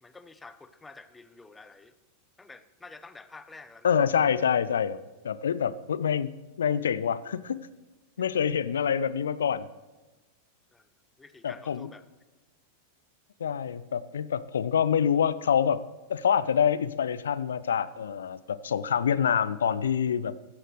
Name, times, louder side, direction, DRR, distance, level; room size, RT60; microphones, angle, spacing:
voice 1, 0.0-1.9 2.4-4.0 10.7-10.9 11.2-12.0, left 3 dB, 10° left, 13 dB, 0.7 m, -49 dB
voice 2, 3.8-5.0 5.2-6.3 6.6-7.6 8.2-9.7 11.4-11.9 13.4-15.8 16.1-20.3, left 8 dB, 65° left, 18 dB, 0.5 m, -26 dB
15.5 x 12.5 x 3.2 m, 1.2 s
figure-of-eight pair, 90°, 0 cm